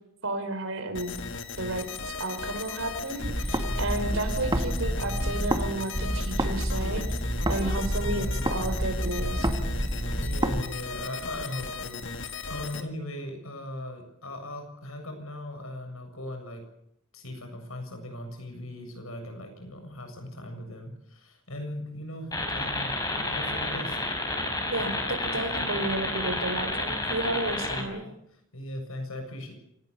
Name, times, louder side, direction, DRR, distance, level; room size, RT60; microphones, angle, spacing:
voice 1, 0.2-1.1 1.6-7.1 7.5-9.5 24.7-28.0, right 2 dB, 65° right, 8 dB, 4.8 m, -32 dB
sound 1, 0.9-12.8, left 4 dB, 60° left, 2.0 m, -37 dB
sound 2, 3.2-5.7 5.9-10.6, equal, 20° right, 2.0 m, -28 dB
voice 2, 8.0-8.5 10.2-16.6 17.1-24.0 25.6-25.7 27.6-29.5, left 1 dB, 75° left, 5 dB, 7.5 m, -39 dB
sound 3, 22.3-27.8, left 2 dB, 20° left, 4.8 m, -30 dB
27.0 x 18.0 x 7.1 m, 0.76 s
head